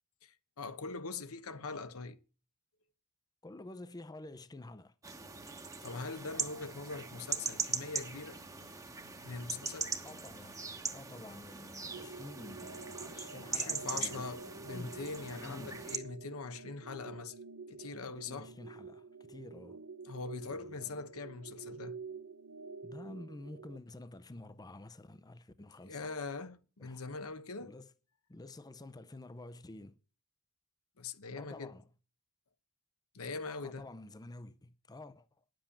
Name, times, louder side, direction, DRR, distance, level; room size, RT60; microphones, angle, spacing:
voice 1, 0.2-2.2 5.8-8.4 9.2-9.9 13.5-17.3 17.7-18.5 20.0-22.0 25.8-27.8 31.0-31.7 33.1-33.9, left 4 dB, 90° left, 1.1 m, -42 dB
voice 2, 3.4-4.9 10.0-14.3 14.7-15.0 15.4-15.8 17.9-19.8 20.5-21.0 22.8-26.1 26.8-27.0 27.6-27.9 28.3-30.0 31.4-31.9 33.6-35.4, left 2 dB, 20° left, 0.6 m, -50 dB
sound 1, 5.0-16.0, right 4 dB, 15° right, 1.1 m, -41 dB
sound 2, 11.9-23.8, right 4 dB, 85° right, 0.7 m, -49 dB
10.0 x 7.7 x 7.2 m
head